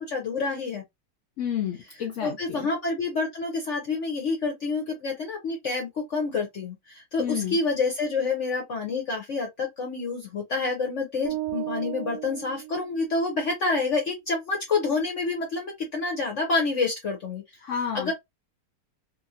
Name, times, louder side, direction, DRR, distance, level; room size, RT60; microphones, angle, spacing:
voice 1, 0.1-0.8 2.2-17.4 17.9-18.1, left 3 dB, 55° left, 0.9 m, -28 dB
voice 2, 1.4-2.7 7.2-7.6 17.6-18.1, left 8 dB, 85° left, 0.6 m, -30 dB
sound 1, 11.2-13.4, right 16 dB, 85° right, 1.3 m, -35 dB
2.8 x 2.6 x 2.7 m
omnidirectional pair, 1.9 m